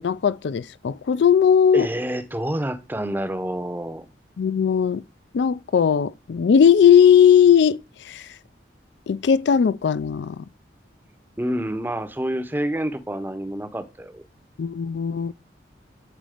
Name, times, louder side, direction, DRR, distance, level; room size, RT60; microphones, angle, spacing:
voice 1, 0.0-1.9 4.4-5.0 5.3-7.8 8.0-8.3 9.1-10.4 14.6-15.3, left 8 dB, 80° left, 0.4 m, -18 dB
voice 2, 1.7-4.1 11.4-14.2, right 1 dB, 10° right, 0.6 m, -28 dB
9.0 x 4.1 x 5.0 m
head